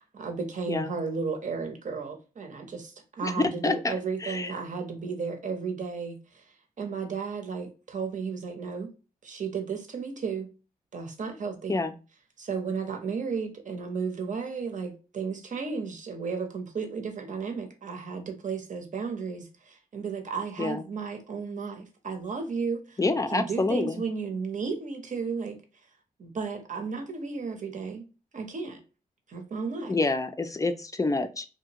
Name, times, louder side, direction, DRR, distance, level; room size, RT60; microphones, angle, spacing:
voice 1, 0.0-6.4 6.8-8.9 9.2-10.5 10.9-11.8 12.4-25.6 26.2-28.1 28.3-28.8 29.3-30.0, right 5 dB, 55° right, 0.7 m, -34 dB
voice 2, 23.0-24.0 29.9-31.5, left 3 dB, 20° left, 0.4 m, -27 dB
2.7 x 2.4 x 2.9 m
cardioid pair, 70°, 15 cm